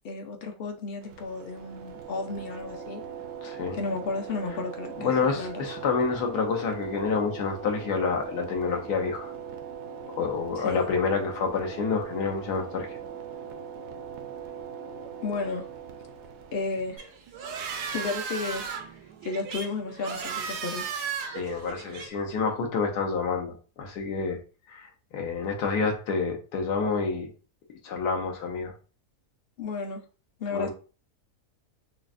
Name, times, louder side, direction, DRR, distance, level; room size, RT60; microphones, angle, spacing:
voice 1, 0.0-3.0 3.7-5.6 10.6-10.8 15.2-15.7 16.5-17.1 17.9-18.9 19.2-20.9 29.6-30.0 30.4-30.7, left 4 dB, 70° left, 3 dB, 0.5 m, -33 dB
sound 1, 1.0-17.0, right 7 dB, 70° right, 0.7 m, -40 dB
voice 2, 3.4-3.8 5.0-9.3 10.1-12.9 21.3-24.4 24.7-27.3 27.8-28.7 30.5-30.7, left 5 dB, 85° left, 2 dB, 1.4 m, -28 dB
sound 2, 17.0-22.1, right 6 dB, 90° right, 1.2 m, -35 dB
6.1 x 2.1 x 2.5 m, 0.36 s
omnidirectional pair, 1.7 m